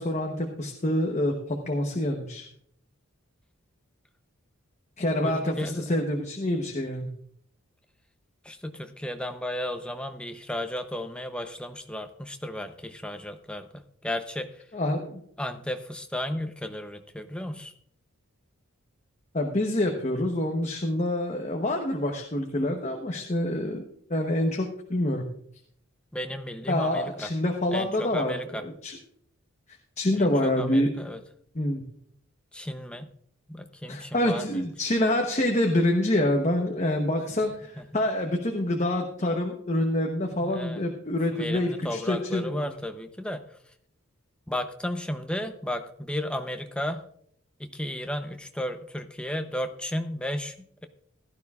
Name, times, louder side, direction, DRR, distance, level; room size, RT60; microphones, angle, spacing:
voice 1, 0.0-2.5 5.0-7.1 14.7-15.2 19.3-23.8 24.1-25.2 26.7-29.0 30.0-30.9 31.5-31.8 33.9-42.7, left 1 dB, 35° left, 2 dB, 0.9 m, -26 dB
voice 2, 5.2-6.0 8.4-14.6 15.4-17.7 26.1-27.3 27.7-28.6 30.1-31.2 32.5-33.1 33.5-34.6 37.8-37.9 40.4-40.8 41.3-43.4 44.5-47.0 47.6-50.8, left 1 dB, 5° left, 7 dB, 0.6 m, -34 dB
16.0 x 12.0 x 2.4 m, 0.66 s
head